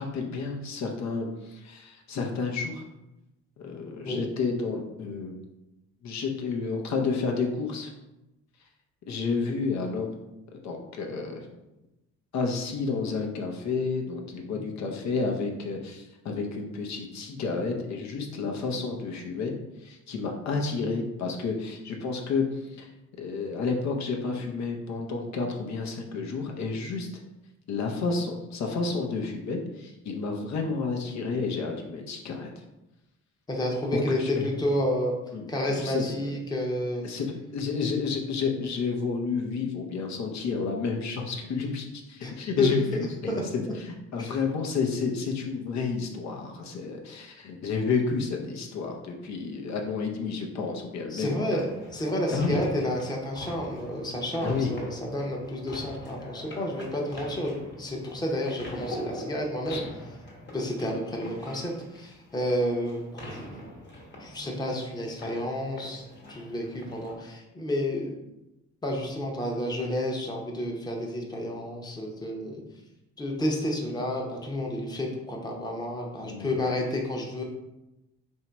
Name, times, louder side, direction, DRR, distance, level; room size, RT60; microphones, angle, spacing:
voice 1, 0.0-2.8 3.6-5.3 6.0-7.9 9.1-10.1 10.6-11.5 12.3-19.5 19.8-22.4 22.7-22.9 23.2-27.1 27.7-32.5 33.9-34.5 35.3-36.3 37.0-42.8 43.2-43.6 44.1-51.6 52.3-52.6 54.4-54.7 59.7-59.8 76.2-76.5, left 4 dB, 65° left, 2 dB, 0.7 m, -30 dB
voice 2, 33.5-35.1 35.5-37.0 42.2-42.3 42.6-42.7 43.3-43.4 43.6-43.7 44.2-44.4 51.1-59.8 60.5-63.7 64.2-68.2 68.8-72.6 73.2-77.4, left 1 dB, 15° left, -1 dB, 0.8 m, -30 dB
sound 1, 51.6-67.2, left 1 dB, 35° left, 1.2 m, -43 dB
3.0 x 2.7 x 4.4 m, 0.95 s
cardioid pair, 90°, 30 cm